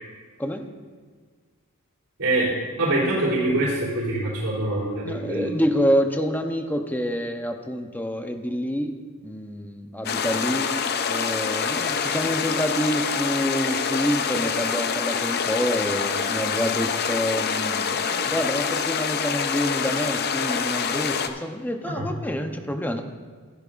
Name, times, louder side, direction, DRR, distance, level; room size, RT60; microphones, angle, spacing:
voice 1, 2.2-2.5 2.8-5.5 22.0-22.1, right 2 dB, 90° right, -9 dB, 3.4 m, -24 dB
voice 2, 5.0-8.9 9.2-10.7 11.1-23.0, equal, 10° left, 5 dB, 0.7 m, -27 dB
sound 1, 10.0-21.3, left 6 dB, 50° left, 0.6 m, -26 dB
15.5 x 10.5 x 2.5 m, 1.5 s
head